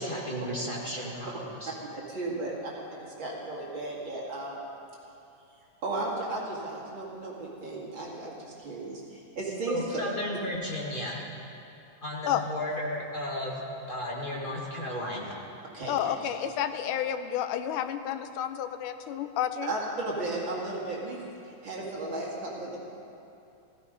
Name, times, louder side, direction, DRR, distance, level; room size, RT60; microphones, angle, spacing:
voice 1, 0.0-1.7 9.7-11.2 12.0-15.4, left 1 dB, 25° left, -3 dB, 1.1 m, -34 dB
voice 2, 1.9-4.6 5.8-10.0 15.7-16.2 19.7-21.2 21.6-22.8, right 2 dB, 40° right, -4 dB, 2.6 m, -35 dB
voice 3, 15.9-19.7, left 10 dB, 90° left, 9 dB, 2.2 m, -30 dB
15.5 x 15.0 x 5.2 m, 2.8 s
omnidirectional pair, 3.7 m